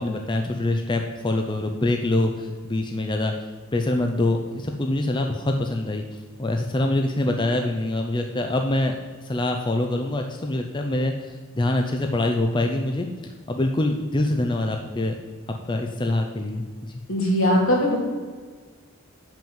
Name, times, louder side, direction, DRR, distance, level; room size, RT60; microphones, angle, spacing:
voice 1, 0.0-3.3 3.7-8.9 9.2-15.1 15.7-17.0, left 2 dB, 20° left, 3 dB, 0.5 m, -25 dB
voice 2, 17.1-18.0, left 1 dB, 70° left, -1 dB, 2.5 m, -20 dB
7.5 x 6.0 x 7.1 m, 1.5 s
head